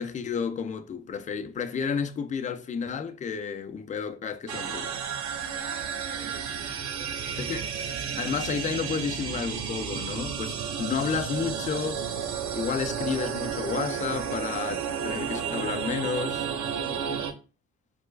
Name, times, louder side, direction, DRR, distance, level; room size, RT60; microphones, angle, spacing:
voice 1, 0.0-5.0 7.4-7.7 8.2-12.0 12.5-16.5, left 6 dB, 25° left, 0.4 m, -31 dB
sound 1, 4.5-17.3, right 7 dB, 70° right, 0.6 m, -32 dB
voice 2, 5.4-7.6, right 1 dB, 50° right, 1.3 m, -48 dB
4.6 x 2.1 x 2.4 m
cardioid pair, 90°, 30 cm